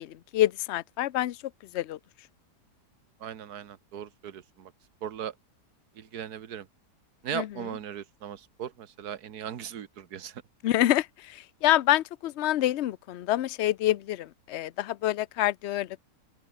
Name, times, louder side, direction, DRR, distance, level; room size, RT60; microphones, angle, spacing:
voice 1, 0.0-1.4 1.7-2.0 7.3-7.5 10.6-16.0, left 14 dB, 70° left, 0.6 m, -27 dB
voice 2, 3.2-4.7 5.0-5.3 6.0-6.7 7.2-10.4, right 9 dB, 65° right, 1.7 m, -38 dB
open air
omnidirectional pair, 1.8 m